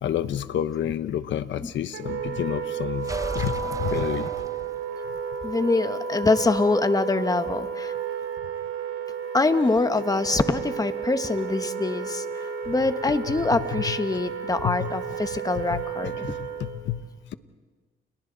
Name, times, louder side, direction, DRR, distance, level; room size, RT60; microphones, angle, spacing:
voice 1, 0.0-4.3 13.7-14.0 14.6-14.9 15.5-17.0, left 10 dB, 70° left, 13 dB, 1.1 m, -30 dB
Wind instrument woodwind instrument, 1.9-16.8, right 6 dB, 85° right, 3.4 m, -32 dB
sound 1, 3.0-5.1, right 2 dB, 15° right, 1.0 m, -35 dB
voice 2, 5.4-7.9 9.3-16.1, left 3 dB, 20° left, 9 dB, 1.4 m, -24 dB
30.0 x 30.0 x 4.1 m, 1.3 s
cardioid pair, 90°, 20 cm